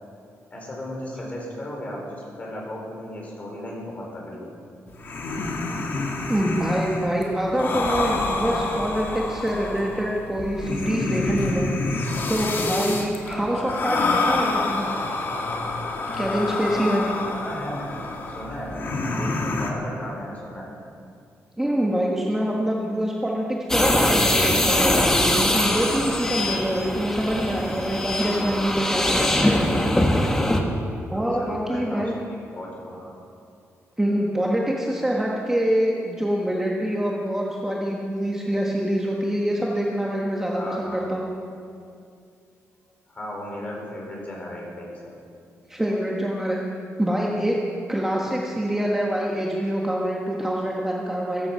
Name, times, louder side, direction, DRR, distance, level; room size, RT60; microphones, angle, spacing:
voice 1, 0.5-4.5 13.2-13.7 17.4-18.0 18.3-20.7 31.1-33.2 40.6-41.1 43.1-45.2, left 1 dB, 25° left, -2 dB, 4.2 m, -35 dB
sound 1, 4.9-19.7, left 3 dB, 45° left, 1.7 m, -28 dB
voice 2, 6.3-15.0 16.1-17.2 21.6-29.6 31.1-32.2 34.0-41.3 45.7-46.6 47.0-47.6 47.9-51.5, equal, 10° right, -3 dB, 1.4 m, -25 dB
sound 2, 23.7-30.6, left 1 dB, 10° left, 1.3 m, -22 dB
15.0 x 15.0 x 5.7 m, 2.4 s
wide cardioid pair, 160°, 5 cm